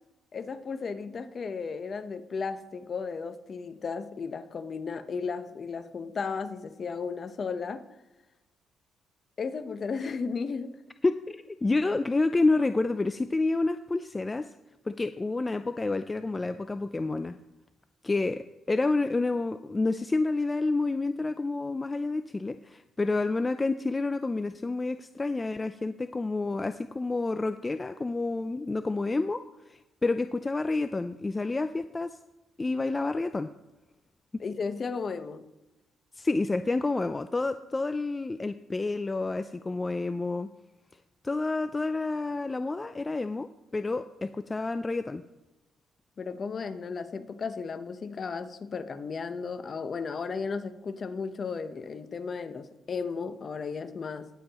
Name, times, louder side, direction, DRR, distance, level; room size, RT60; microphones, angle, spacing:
voice 1, 0.3-7.9 9.4-10.8 34.4-35.4 43.8-43.9 46.2-54.3, left 5 dB, 45° left, 0.9 m, -34 dB
voice 2, 11.0-14.4 14.9-17.4 18.0-29.4 29.7-32.2 32.6-33.5 36.1-40.5 41.2-43.5 43.7-45.2, left 3 dB, 20° left, 0.4 m, -29 dB
18.5 x 7.4 x 3.0 m
cardioid pair, 90°, 0 cm